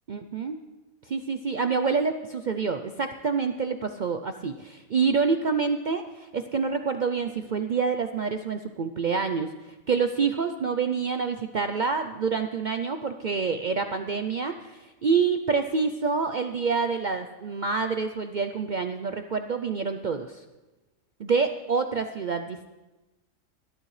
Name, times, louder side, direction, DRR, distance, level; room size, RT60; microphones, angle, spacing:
voice 1, 0.1-0.6 1.1-20.4 21.2-22.7, right 5 dB, 60° right, 7 dB, 0.4 m, -27 dB
20.0 x 12.0 x 3.2 m, 1.1 s
omnidirectional pair, 1.4 m